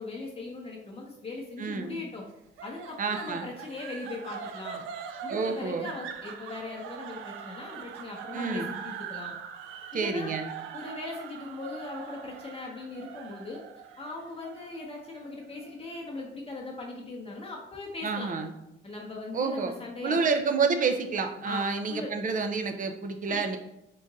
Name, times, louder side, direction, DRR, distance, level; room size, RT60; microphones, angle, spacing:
voice 1, 0.0-2.2 2.6-4.8 5.2-9.4 9.9-10.3 10.7-13.6 14.0-18.3 18.8-20.2 21.4-22.1 23.3-23.6, left 2 dB, 30° left, -1 dB, 0.8 m, -39 dB
voice 2, 1.6-2.0 3.0-3.4 5.3-5.9 8.3-8.7 9.9-10.5 18.0-18.5 19.3-19.7 20.0-23.6, right 4 dB, 40° right, 6 dB, 0.6 m, -29 dB
sound 1, 2.6-15.7, right 8 dB, 90° right, 0.4 m, -42 dB
3.8 x 2.5 x 4.0 m, 0.89 s
cardioid pair, 90°, 20 cm